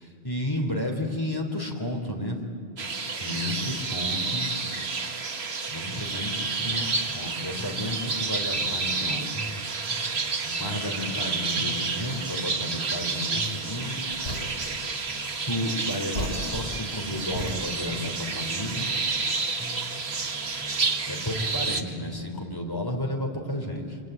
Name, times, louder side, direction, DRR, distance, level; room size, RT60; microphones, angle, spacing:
voice 1, 0.0-2.4 2.9-4.5 5.7-9.3 10.4-14.0 15.4-18.9 21.1-24.0, left 1 dB, 20° left, 2 dB, 3.4 m, -32 dB
sound 1, 2.8-21.8, right 4 dB, 80° right, 1.7 m, -30 dB
sound 2, 5.9-7.3 7.6-11.3 11.6-15.3 15.6-19.3 19.6-21.7, left 1 dB, 5° right, 3.3 m, -43 dB
sound 3, 14.1-14.9 15.9-17.0 17.3-18.0, left 1 dB, 85° left, 5.5 m, -36 dB
26.0 x 25.0 x 9.1 m, 2.4 s
omnidirectional pair, 1.1 m